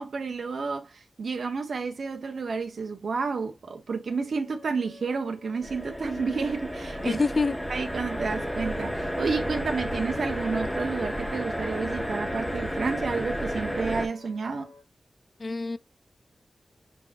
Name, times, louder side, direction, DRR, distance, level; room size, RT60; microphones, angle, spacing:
voice 1, 0.0-7.2 7.7-14.7, right 4 dB, 70° right, 0.7 m, -31 dB
Wind instrument woodwind instrument, 4.0-14.9, left 2 dB, 90° left, 1.5 m, -51 dB
sound 1, 5.6-14.1, equal, 5° left, 0.8 m, -32 dB
voice 2, 7.0-7.6 15.4-15.8, left 3 dB, 40° left, 0.3 m, -26 dB
5.1 x 3.5 x 2.3 m
wide cardioid pair, 100°, 0 cm